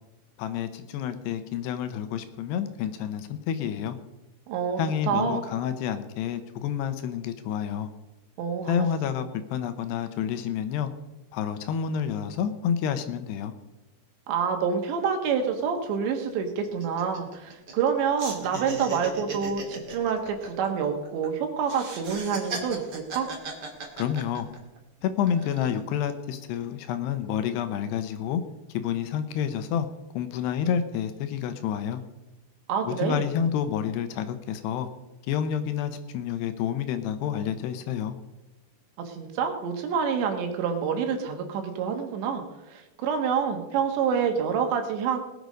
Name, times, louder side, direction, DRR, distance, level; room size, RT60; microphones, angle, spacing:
voice 1, 0.4-4.0 4.8-7.9 8.7-9.3 9.5-10.9 11.3-13.5 24.0-24.5 25.0-28.4 28.7-29.9 30.2-32.0 32.8-34.9 35.3-38.2, left 8 dB, 80° left, 10 dB, 2.9 m, -29 dB
voice 2, 4.5-4.8 5.1-5.4 8.4-8.9 14.3-23.3 32.7-33.2 39.1-45.2, right 6 dB, 85° right, 4 dB, 3.9 m, -27 dB
sound 1, 15.4-15.5 15.8-15.9 16.3-17.9 18.2-21.3 21.6-24.8 25.2-25.8, right 3 dB, 40° right, 1.6 m, -37 dB
20.0 x 8.0 x 5.2 m, 0.98 s
omnidirectional pair, 5.0 m